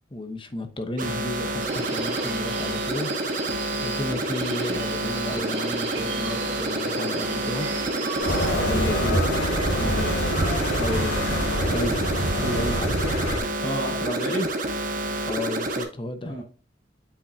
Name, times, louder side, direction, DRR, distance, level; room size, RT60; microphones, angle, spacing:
voice 1, 0.1-3.1 3.8-7.7 8.5-11.3 12.7-13.2 15.3-16.3, left 2 dB, 25° left, 0.9 m, -33 dB
sound 1, 1.0-15.8, right 2 dB, 45° right, 1.0 m, -29 dB
Subway metro underground, 1.6-8.5, right 3 dB, 75° right, 2.2 m, -34 dB
sound 2, 8.2-13.4, equal, 80° left, 3.4 m, -25 dB
voice 2, 12.4-12.9 13.6-14.5 16.2-16.4, right 1 dB, 65° left, 3.0 m, -28 dB
8.6 x 5.3 x 2.7 m
head